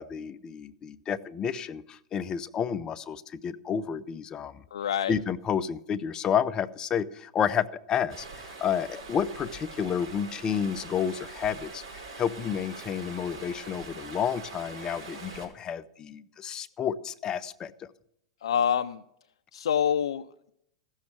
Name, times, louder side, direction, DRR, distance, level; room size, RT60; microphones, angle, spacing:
voice 1, 0.0-4.6 5.1-11.8 12.2-17.9, left 8 dB, 25° left, 12 dB, 0.6 m, -30 dB
voice 2, 4.7-5.1 18.4-19.0 19.5-20.5, left 8 dB, 85° left, 8 dB, 0.4 m, -27 dB
Stream, 8.1-15.5, right 3 dB, 55° right, 4.8 m, -43 dB
15.0 x 6.4 x 6.0 m, 0.74 s
hypercardioid pair, 125°, 3 cm